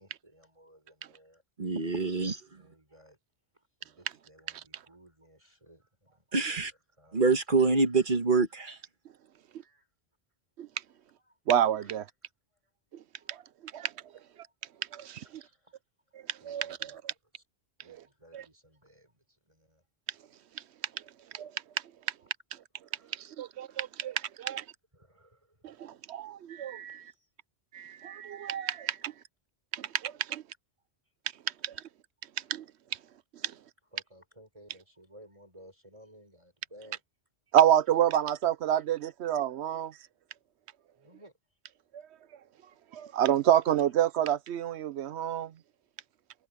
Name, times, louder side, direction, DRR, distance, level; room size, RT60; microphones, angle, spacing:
voice 1, 0.0-1.4 1.8-2.1 2.5-3.2 3.5-6.6 7.0-7.2 9.6-9.9 11.3-11.4 11.8-11.9 13.2-13.3 14.4-14.5 15.2-15.8 16.4-17.0 17.3-17.4 17.8-19.8 22.2-22.3 22.8-23.8 24.9-25.8 26.9-27.3 33.9-37.0 39.0-39.1 39.7-40.1 41.0-41.3, equal, 30° right, 5.4 m, -58 dB
voice 2, 1.6-2.4 6.3-6.7 7.1-8.8, right 4 dB, 50° right, 1.7 m, -26 dB
voice 3, 11.5-12.0 13.3-13.4 13.7-13.9 14.9-15.4 16.3-17.1 17.9-18.0 18.3-18.4 21.3-21.5 23.1-24.6 25.6-27.0 27.7-29.1 29.7-30.4 31.6-31.8 32.5-32.6 33.4-33.5 37.5-39.9 41.9-42.0 42.9-45.5, right 10 dB, 75° right, 0.9 m, -28 dB
omnidirectional pair, 1.1 m